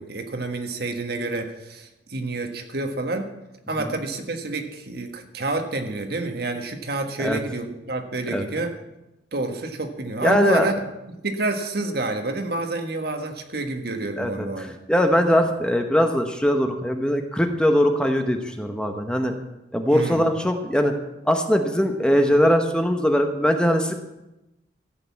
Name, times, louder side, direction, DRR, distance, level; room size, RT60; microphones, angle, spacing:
voice 1, 0.0-3.3 3.7-8.8 9.3-14.7 19.9-20.3, right 2 dB, 60° right, 5 dB, 1.5 m, -28 dB
voice 2, 10.2-10.7 14.2-19.3 19.7-20.9 21.3-23.9, equal, 5° left, 5 dB, 0.9 m, -21 dB
14.5 x 6.7 x 8.3 m, 0.97 s
head